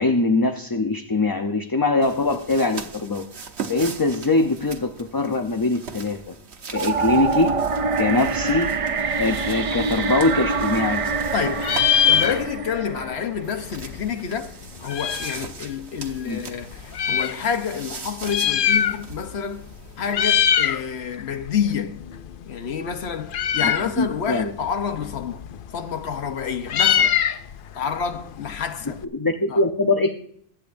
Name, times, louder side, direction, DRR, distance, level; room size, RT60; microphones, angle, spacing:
voice 1, 0.0-3.2 3.7-6.3 6.7-7.6 8.0-8.7 9.2-11.0 16.3-16.4 23.6-23.7 24.0-24.5 29.1-30.1, left 2 dB, 25° left, 0.7 m, -22 dB
sound 1, 2.0-12.4 13.4-20.5, right 5 dB, 80° right, 1.3 m, -40 dB
sound 2, 6.7-13.8, right 4 dB, 45° right, 0.5 m, -25 dB
Meow, 10.3-11.3 11.5-12.8 13.1-13.2 13.4-15.5 16.2-17.4 18.1-19.3 19.6-19.8 20.1-20.8 21.2-29.0, left 9 dB, 60° left, 0.7 m, -23 dB
voice 2, 11.3-14.5 14.8-19.7 20.0-22.0 22.5-25.5 25.7-27.2 27.7-29.0 29.5-29.6, left 7 dB, 80° left, 1.2 m, -28 dB
22.5 x 8.8 x 2.6 m
omnidirectional pair, 1.1 m